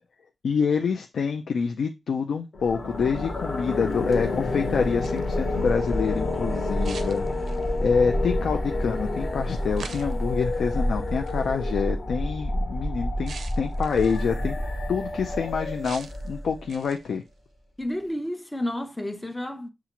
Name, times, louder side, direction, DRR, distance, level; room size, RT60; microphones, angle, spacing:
voice 1, 0.4-7.4 7.8-14.6 14.9-17.2, left 5 dB, 70° left, 0.4 m, -27 dB
sound 1, 2.5-16.7, left 1 dB, 40° left, 1.1 m, -28 dB
sound 2, 4.8-5.4 6.8-7.8 9.8-10.3 11.3-11.5 13.3-14.3 15.8-16.3 16.7-17.2, right 5 dB, 65° right, 0.4 m, -42 dB
voice 2, 17.8-19.7, left 1 dB, 10° left, 0.5 m, -31 dB
6.8 x 2.4 x 2.9 m
wide cardioid pair, 175°, 0 cm